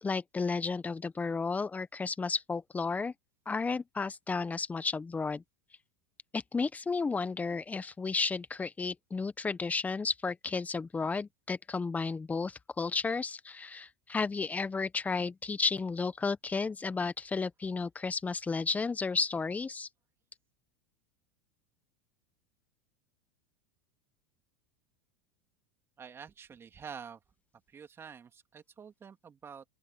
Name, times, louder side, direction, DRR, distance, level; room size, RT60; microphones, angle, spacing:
voice 1, 0.0-3.1 3.5-5.4 6.3-19.9, left 4 dB, 15° left, 1.3 m, -33 dB
voice 2, 26.0-27.2 27.7-29.6, right 6 dB, 25° right, 3.4 m, -47 dB
open air
hypercardioid pair, 95°, 9 cm